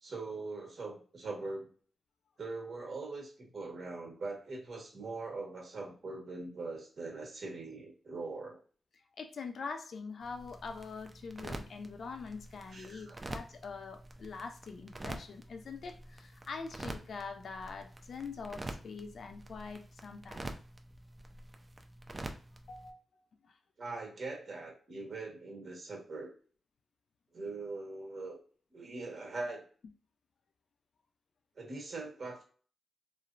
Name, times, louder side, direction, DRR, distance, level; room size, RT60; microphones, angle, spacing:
voice 1, 0.0-1.7 2.4-8.6 12.7-13.2 23.8-26.3 27.3-28.4 28.7-29.6 31.6-32.4, right 3 dB, 60° right, 1.3 m, -42 dB
voice 2, 9.2-20.5 22.7-23.0, left 4 dB, 70° left, 0.4 m, -44 dB
sound 1, 10.2-22.9, right 2 dB, 30° right, 0.5 m, -47 dB
3.1 x 2.0 x 2.5 m
supercardioid pair, 50°, 0 cm